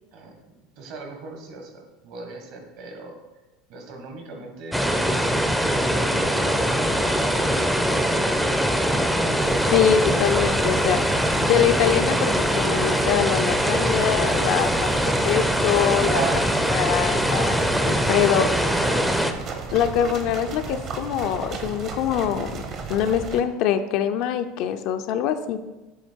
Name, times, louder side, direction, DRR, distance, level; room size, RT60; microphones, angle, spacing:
voice 1, 0.1-3.2 3.7-8.4 18.3-19.2, right 2 dB, 65° right, 2 dB, 1.5 m, -40 dB
sound 1, 4.7-19.3, equal, ahead, 0.4 m, -22 dB
sound 2, 9.4-23.4, right 5 dB, 45° right, 0.8 m, -34 dB
voice 2, 9.7-11.0 11.4-17.6 17.9-18.5 19.7-22.6 22.9-25.6, left 9 dB, 60° left, 9 dB, 0.4 m, -24 dB
7.3 x 2.9 x 4.4 m, 1.1 s
supercardioid pair, 120°, 0 cm